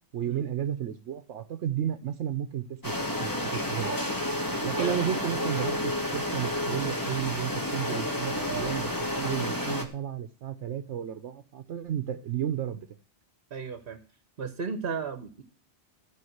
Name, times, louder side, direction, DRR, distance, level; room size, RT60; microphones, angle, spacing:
voice 1, 0.1-4.0 4.6-8.9 9.2-12.9, right 10 dB, 80° right, 9 dB, 1.0 m, -33 dB
sound 1, 2.8-9.9, left 1 dB, 15° left, 1.8 m, -30 dB
voice 2, 13.5-14.0 14.4-15.4, right 5 dB, 55° right, 9 dB, 1.2 m, -34 dB
14.0 x 5.1 x 7.9 m, 0.38 s
omnidirectional pair, 1.2 m